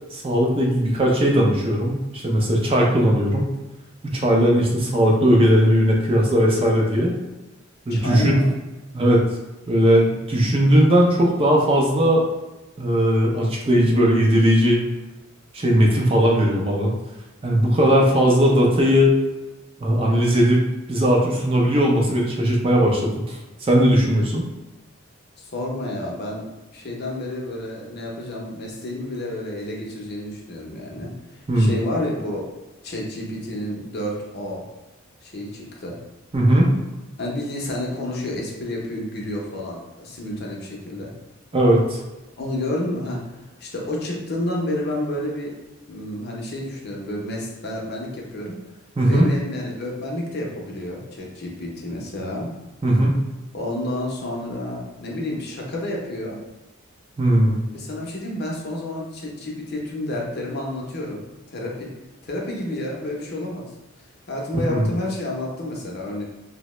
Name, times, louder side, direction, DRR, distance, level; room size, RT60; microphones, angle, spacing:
voice 1, 0.1-3.5 4.0-7.1 7.9-8.4 8.9-9.2 9.7-12.3 12.8-14.9 15.5-16.9 17.4-19.1 19.8-20.6 20.9-24.4 31.5-31.7 36.3-36.7 41.5-42.0 49.0-49.3 52.8-53.2 57.2-57.7 64.7-64.9, equal, 30° right, -1 dB, 0.4 m, -18 dB
voice 2, 7.9-8.5 25.4-26.5 26.7-32.5 32.8-34.6 35.2-36.0 37.2-41.1 42.4-45.6 45.8-48.6 49.1-52.5 53.5-56.4 57.7-61.9 62.2-63.7 64.3-66.2, left 1 dB, 55° left, -2 dB, 0.6 m, -30 dB
2.7 x 2.1 x 3.0 m, 1.1 s
head